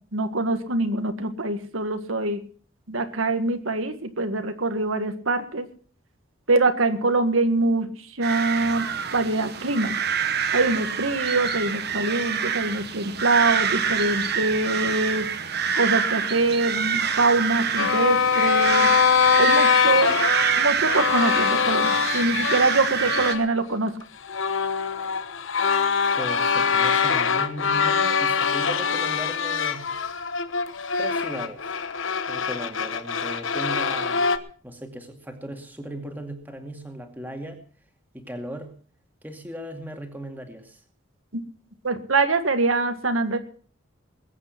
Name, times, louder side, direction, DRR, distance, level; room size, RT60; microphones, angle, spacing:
voice 1, 0.1-2.4 2.9-5.6 6.5-7.9 8.2-9.9 10.5-15.3 15.7-18.9 19.4-20.2 20.6-23.9 41.3-41.4 41.8-43.4, right 2 dB, 85° right, 7 dB, 1.8 m, -24 dB
sound 1, 8.2-23.3, right 7 dB, 50° right, 1.2 m, -26 dB
sound 2, 17.8-23.4 23.9-24.0 24.2-34.4, left 6 dB, 75° left, 1.0 m, -23 dB
voice 2, 26.2-29.8 31.0-31.6 32.3-34.2 34.6-37.6 38.1-38.7 39.2-40.8, equal, 10° right, 4 dB, 2.2 m, -37 dB
21.0 x 8.7 x 5.9 m, 0.43 s
head